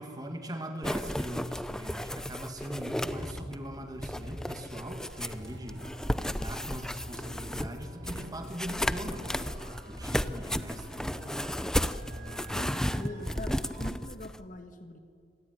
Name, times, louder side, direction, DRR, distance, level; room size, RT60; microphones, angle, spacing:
voice 1, 0.0-5.8 6.2-9.4 9.8-11.2, equal, 20° right, 5 dB, 2.0 m, -40 dB
sound 1, 0.8-3.7 4.0-14.4, equal, 5° left, 0.6 m, -34 dB
sound 2, 2.7-4.3 4.6-4.7 5.1-7.1 7.4-7.5, equal, 85° right, 3.5 m, -52 dB
sound 3, 3.0-13.9, equal, 55° right, 4.1 m, -46 dB
voice 2, 12.5-15.0, left 1 dB, 45° left, 7 dB, 1.5 m, -43 dB
25.5 x 18.5 x 9.6 m, 2.3 s
head